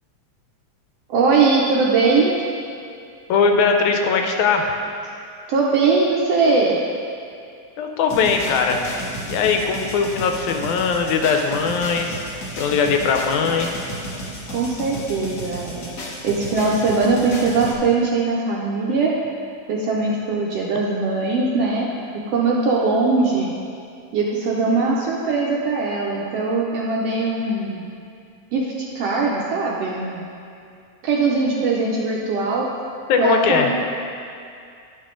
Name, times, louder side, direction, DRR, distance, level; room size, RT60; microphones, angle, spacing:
voice 1, 1.1-2.4 5.5-6.8 14.5-15.9 16.2-19.2 19.7-21.9 22.1-23.5 24.1-27.9 28.5-30.3 31.0-32.7 33.2-33.7, right 3 dB, 80° right, -3 dB, 1.5 m, -20 dB
voice 2, 3.3-4.7 7.8-8.8 9.2-12.2 12.6-13.7 33.1-33.7, left 5 dB, 85° left, 3 dB, 2.0 m, -20 dB
sound 1, 8.1-17.7, equal, 70° left, 0.9 m, -33 dB
11.0 x 5.5 x 3.8 m, 2.4 s
omnidirectional pair, 3.4 m